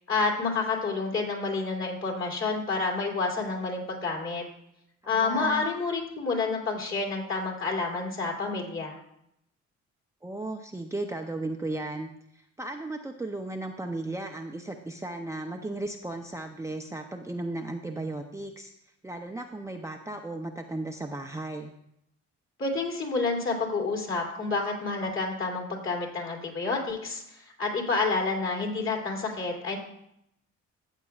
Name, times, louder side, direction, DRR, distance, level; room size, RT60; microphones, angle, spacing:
voice 1, 0.1-4.4 5.1-9.0 22.6-29.8, left 3 dB, 45° left, 1 dB, 2.9 m, -29 dB
voice 2, 5.0-5.7 10.2-18.7 19.0-21.7, right 2 dB, 10° right, 3 dB, 0.6 m, -35 dB
14.0 x 8.1 x 2.4 m, 0.77 s
cardioid pair, 90°, 30 cm